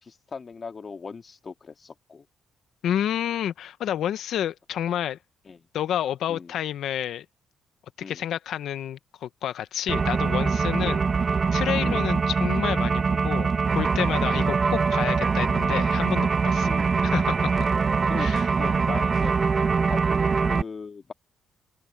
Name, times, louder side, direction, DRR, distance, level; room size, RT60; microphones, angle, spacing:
voice 1, 0.0-2.3 5.5-5.7 6.3-6.6 8.0-8.3 10.8-11.1 11.8-12.2 14.2-14.6 16.6-17.0 18.1-18.3 18.6-19.3 19.9-21.1, left 5 dB, 40° left, 1.9 m, -38 dB
voice 2, 2.8-5.2 5.7-7.2 8.1-11.0 11.5-16.7 17.0-17.7 18.2-18.4, left 10 dB, 75° left, 1.0 m, -29 dB
sound 1, 9.9-20.6, right 5 dB, 40° right, 1.0 m, -23 dB
open air
cardioid pair, 90°, 0 cm